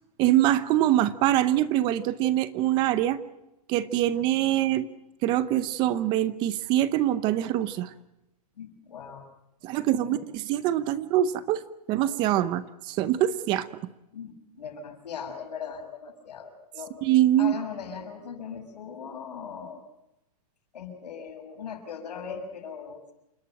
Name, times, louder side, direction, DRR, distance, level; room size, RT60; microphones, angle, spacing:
voice 1, 0.2-3.2 3.7-4.9 5.2-7.9 9.6-11.6 11.9-13.7 17.0-17.5, right 13 dB, 20° right, 15 dB, 0.7 m, -24 dB
voice 2, 8.6-9.2 9.8-10.2 14.1-16.9 17.4-19.8 20.7-23.1, left 6 dB, 85° left, 4 dB, 6.5 m, -39 dB
28.5 x 12.5 x 8.9 m, 0.93 s
hypercardioid pair, 165°, 20 cm